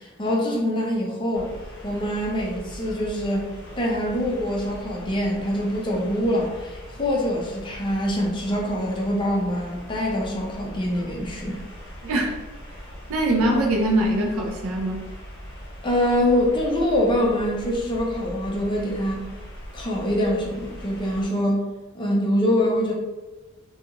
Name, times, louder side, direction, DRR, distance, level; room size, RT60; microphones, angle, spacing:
voice 1, 0.0-1.5 1.8-3.5 3.8-11.6 15.8-19.2 19.7-21.6 21.9-22.9, equal, 20° left, -2 dB, 0.5 m, -24 dB
sound 1, 1.3-21.3, equal, 50° left, 0.8 m, -41 dB
voice 2, 12.0-12.4 13.1-15.1, right 1 dB, 80° right, 0 dB, 0.5 m, -22 dB
2.4 x 2.3 x 2.8 m, 1.2 s
head